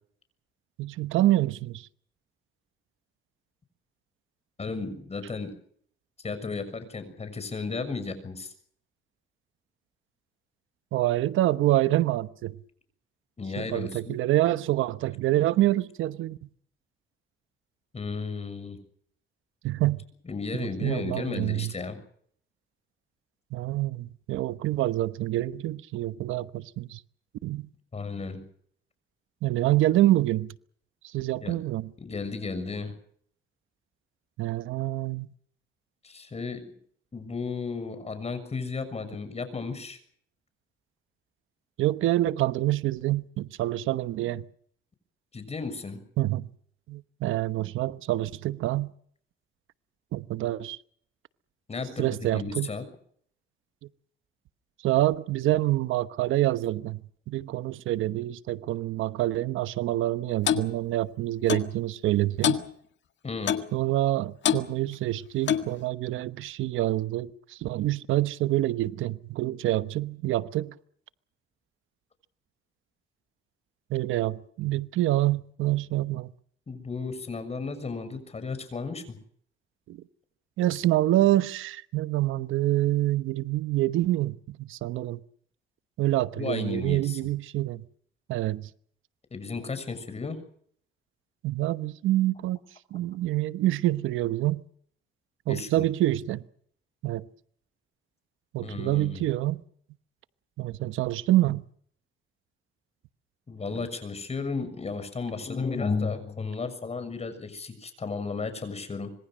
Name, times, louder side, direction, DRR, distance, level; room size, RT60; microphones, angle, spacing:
voice 1, 0.8-1.9 10.9-12.6 13.6-16.4 19.6-20.0 20.6-21.7 23.5-27.0 27.4-27.7 29.4-30.5 31.1-31.9 34.4-35.3 41.8-44.5 46.2-46.5 46.9-48.9 50.1-50.8 52.0-52.7 54.8-57.0 57.3-62.6 63.7-70.7 73.9-76.3 79.9-80.0 80.6-85.2 86.0-87.8 88.3-88.7 91.4-92.6 92.9-94.6 95.5-96.4 97.0-97.2 98.5-99.6 100.6-101.6, right 15 dB, 85° right, 1.1 m, -26 dB
voice 2, 4.6-5.5 6.2-8.5 13.4-14.2 17.9-18.8 20.2-22.0 27.9-28.4 31.4-31.6 32.0-32.9 36.0-36.7 37.1-40.0 45.3-46.0 51.7-52.9 63.2-63.6 76.7-79.2 86.4-87.2 89.3-90.4 95.5-95.8 98.6-99.3 103.5-109.1, left 4 dB, 30° left, 6.7 m, -34 dB
Clock, 60.5-60.7 61.5-61.7 62.4-62.7 63.5-63.7 64.4-64.7 65.5-65.7, left 9 dB, 65° left, 1.8 m, -25 dB
26.0 x 22.0 x 6.4 m
cardioid pair, 90°, 20 cm